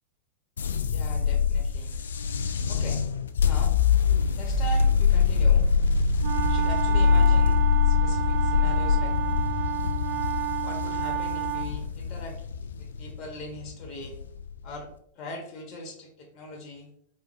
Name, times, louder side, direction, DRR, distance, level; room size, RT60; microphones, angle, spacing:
sound 1, 0.6-14.8, left 6 dB, 65° left, 0.4 m, -24 dB
voice 1, 0.9-2.0 2.7-3.0 3.4-3.8 4.3-5.7 6.5-9.2 10.6-12.5 12.8-14.2 14.6-16.9, left 2 dB, 35° left, 2 dB, 1.1 m, -41 dB
sound 2, 6.2-11.7, right 11 dB, 60° right, 1.8 m, -31 dB
4.4 x 4.3 x 2.6 m, 0.67 s
figure-of-eight pair, 90°, 0 cm